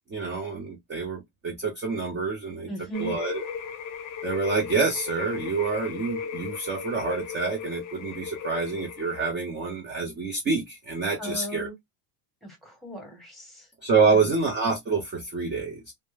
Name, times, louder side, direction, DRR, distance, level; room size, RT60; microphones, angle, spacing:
voice 1, 0.1-2.7 3.0-3.4 4.2-11.7 13.8-15.9, right 4 dB, 25° right, 0.5 m, -27 dB
voice 2, 2.7-3.1 11.2-11.7 12.4-13.7 14.0-14.4, right 1 dB, ahead, 1.0 m, -37 dB
sound 1, 2.9-9.3, left 7 dB, 40° left, 0.5 m, -36 dB
2.2 x 2.0 x 3.1 m
cardioid pair, 155°, 50 cm